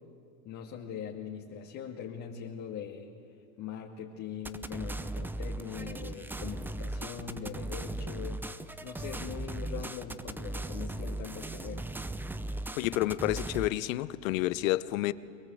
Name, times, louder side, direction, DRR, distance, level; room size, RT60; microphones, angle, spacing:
voice 1, 0.5-3.1 3.6-8.4 8.8-12.0, left 7 dB, 40° left, -1 dB, 2.2 m, -41 dB
sound 1, 4.4-13.7, right 2 dB, 5° right, 0.6 m, -37 dB
voice 2, 12.8-15.1, left 16 dB, 70° left, 15 dB, 0.9 m, -29 dB
23.0 x 22.5 x 7.8 m, 2.4 s
hypercardioid pair, 105°, 42 cm